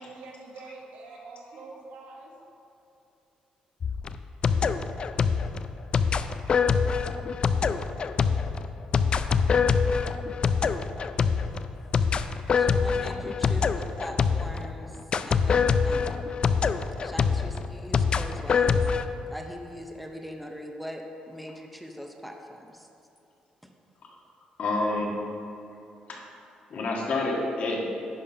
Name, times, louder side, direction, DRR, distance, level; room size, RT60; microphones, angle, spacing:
voice 1, 0.0-2.3, right 3 dB, 85° right, 0 dB, 1.3 m, -45 dB
sound 1, 3.8-14.7 15.1-19.0, left 5 dB, 40° left, 0.3 m, -25 dB
voice 2, 12.5-16.3 17.0-18.9 19.3-22.9 23.6-23.7, equal, ahead, 2 dB, 0.7 m, -41 dB
voice 3, 24.6-25.1 26.1-26.2 26.7-27.8, left 2 dB, 65° left, -2 dB, 1.6 m, -28 dB
10.0 x 4.3 x 5.5 m, 2.7 s
cardioid pair, 105°, 2 cm